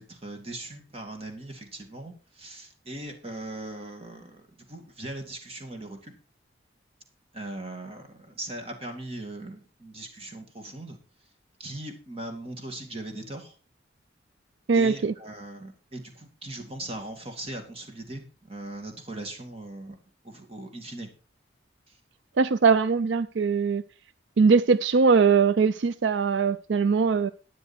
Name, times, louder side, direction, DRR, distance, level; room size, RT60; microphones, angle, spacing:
voice 1, 0.0-6.2 7.3-11.0 11.6-13.6 14.7-20.0 20.2-21.1 21.9-22.0, right 1 dB, 30° right, 5 dB, 2.4 m, -39 dB
voice 2, 14.7-15.1 22.4-23.8 24.4-27.3, right 5 dB, 75° right, 16 dB, 0.4 m, -21 dB
12.0 x 9.2 x 4.4 m, 0.36 s
head